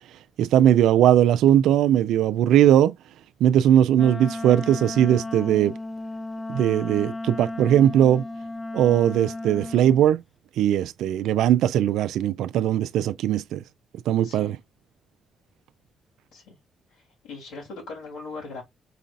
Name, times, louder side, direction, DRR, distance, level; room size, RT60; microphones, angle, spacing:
voice 1, 0.4-2.9 3.4-5.7 6.5-8.2 8.7-10.2 10.6-13.6 14.1-14.6, right 11 dB, 80° right, 0.3 m, -19 dB
Wind instrument woodwind instrument, 3.9-10.0, left 2 dB, 20° left, 0.3 m, -34 dB
voice 2, 14.2-14.6 16.3-16.6 16.9-18.6, left 3 dB, 90° left, 2.9 m, -40 dB
4.8 x 3.9 x 2.5 m
supercardioid pair, 55°, 0 cm